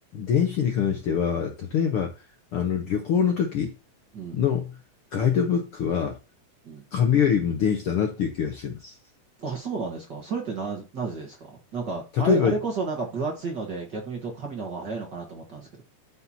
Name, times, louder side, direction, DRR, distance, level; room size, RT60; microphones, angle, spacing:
voice 1, 0.1-2.1 2.5-3.7 4.3-4.7 5.1-6.1 6.9-8.9 12.2-12.5, left 7 dB, 65° left, 1.5 m, -24 dB
voice 2, 9.4-15.7, right 4 dB, 45° right, 1.6 m, -32 dB
13.5 x 5.9 x 2.8 m
omnidirectional pair, 3.6 m